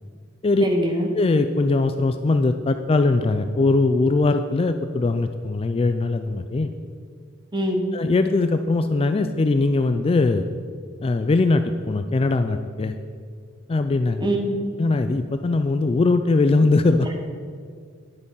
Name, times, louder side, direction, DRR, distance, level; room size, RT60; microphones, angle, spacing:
voice 1, 0.6-1.1 7.5-7.9 14.2-14.6, equal, 20° right, 3 dB, 1.3 m, -23 dB
voice 2, 1.1-6.7 7.9-10.5 11.0-13.0 13.7-14.3 14.8-17.1, left 3 dB, 30° left, 8 dB, 0.4 m, -21 dB
9.9 x 8.0 x 5.6 m, 2.1 s
head